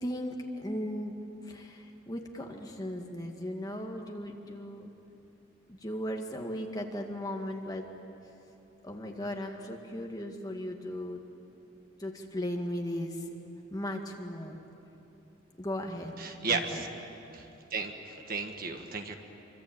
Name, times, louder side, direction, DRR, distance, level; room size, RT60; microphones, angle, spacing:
voice 1, 0.0-1.1 1.4-4.9 5.7-7.9 8.8-11.2 12.0-13.2 13.7-14.6 15.6-16.2 16.5-16.8, equal, 20° left, 2 dB, 2.0 m, -37 dB
voice 2, 16.2-16.9 17.3-19.2, right 4 dB, 45° right, 5 dB, 1.6 m, -34 dB
26.5 x 25.0 x 8.9 m, 3.0 s
head